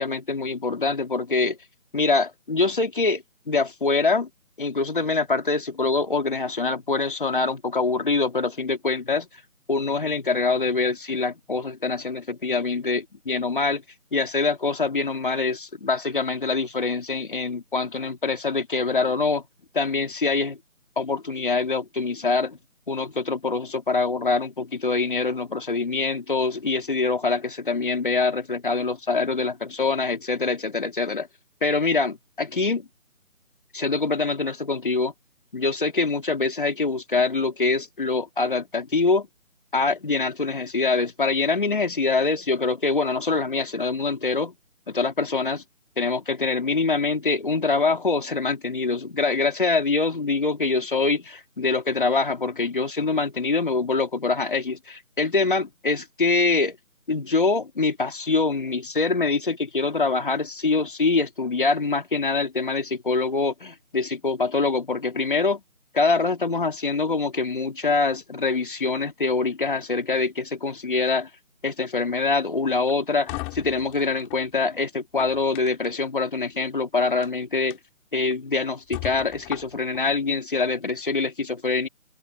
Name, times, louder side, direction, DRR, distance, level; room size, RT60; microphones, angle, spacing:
voice 1, 0.0-1.6 1.9-4.3 4.6-9.3 9.7-13.8 14.1-19.4 19.7-20.6 21.0-22.6 22.9-31.3 31.6-32.9 33.7-35.1 35.5-39.3 39.7-44.5 44.9-45.6 46.0-56.8 57.1-65.6 65.9-71.3 71.6-77.8 78.1-81.9, left 3 dB, 40° left, 3.2 m, -24 dB
sound 1, 72.7-74.4 75.0-76.1 77.1-77.3 77.7-77.8 78.3-78.4 78.9-80.0, left 23 dB, 5° left, 3.8 m, -37 dB
figure-of-eight pair, 175°, 41 cm